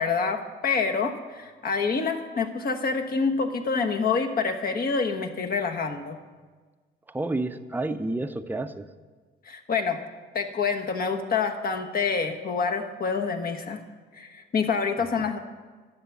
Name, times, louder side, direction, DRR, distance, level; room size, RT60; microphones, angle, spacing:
voice 1, 0.0-6.2 9.5-10.0 10.3-13.8 14.2-15.4, left 5 dB, 50° left, 4 dB, 1.2 m, -27 dB
voice 2, 7.1-8.9 15.0-15.3, right 2 dB, 10° right, 8 dB, 0.6 m, -30 dB
11.0 x 7.4 x 7.0 m, 1.4 s
cardioid pair, 90°, 20 cm